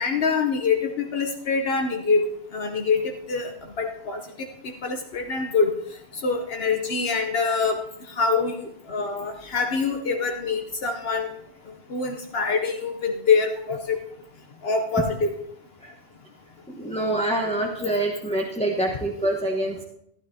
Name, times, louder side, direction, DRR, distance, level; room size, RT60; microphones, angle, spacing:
voice 1, 0.0-3.5 3.8-4.5 4.8-5.7 6.1-7.8 8.1-11.3 11.9-14.0 14.6-15.3, left 4 dB, 70° left, 4 dB, 1.1 m, -25 dB
voice 2, 16.7-19.8, right 1 dB, 5° left, -1 dB, 1.1 m, -26 dB
15.0 x 12.0 x 2.8 m, 0.75 s
omnidirectional pair, 1.0 m